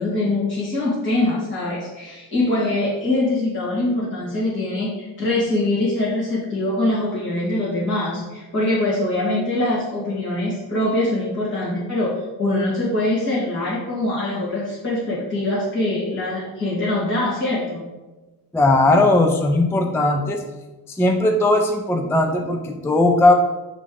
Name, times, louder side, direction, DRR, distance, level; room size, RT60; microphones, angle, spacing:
voice 1, 0.0-12.1 12.4-17.8, left 1 dB, 30° left, -9 dB, 1.9 m, -23 dB
voice 2, 18.5-20.4 20.9-23.3, left 2 dB, 5° left, 4 dB, 0.3 m, -18 dB
9.4 x 3.2 x 3.8 m, 1.2 s
cardioid pair, 140°, 38 cm